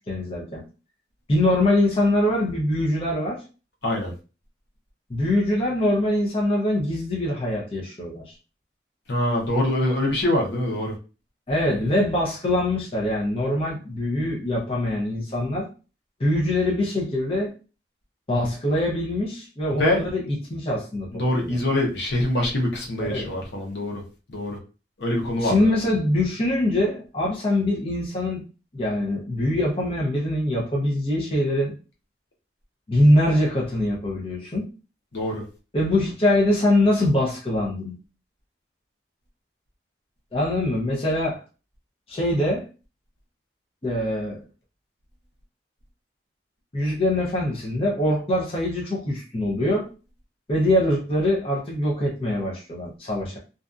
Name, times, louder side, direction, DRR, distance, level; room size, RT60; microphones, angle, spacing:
voice 1, 0.1-0.6 1.3-3.4 5.1-8.2 11.5-15.7 16.2-17.5 18.3-21.6 23.0-23.3 25.3-28.4 28.7-31.7 32.9-34.7 35.7-38.0 40.3-41.4 42.1-42.7 43.8-44.4 46.7-49.9 50.5-53.4, left 1 dB, 35° left, 0.7 m, -23 dB
voice 2, 3.8-4.1 9.1-11.0 19.7-20.1 21.1-24.0 24.3-24.6 25.0-25.7 35.1-35.5, left 1 dB, 70° left, 0.8 m, -24 dB
2.6 x 2.3 x 2.4 m
head